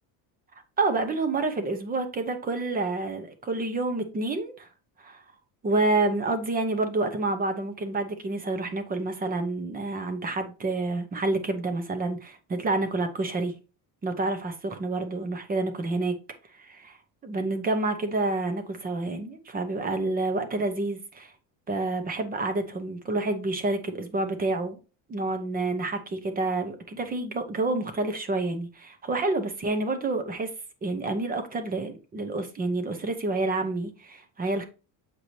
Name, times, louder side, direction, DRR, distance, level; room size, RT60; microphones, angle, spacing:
voice 1, 0.8-4.7 5.0-5.2 5.6-13.5 14.0-16.2 16.6-17.0 17.2-21.3 21.7-24.8 25.1-30.5 30.8-34.6, right 2 dB, 20° right, 0.9 m, -28 dB
7.7 x 4.8 x 2.7 m
cardioid pair, 170°, 45 cm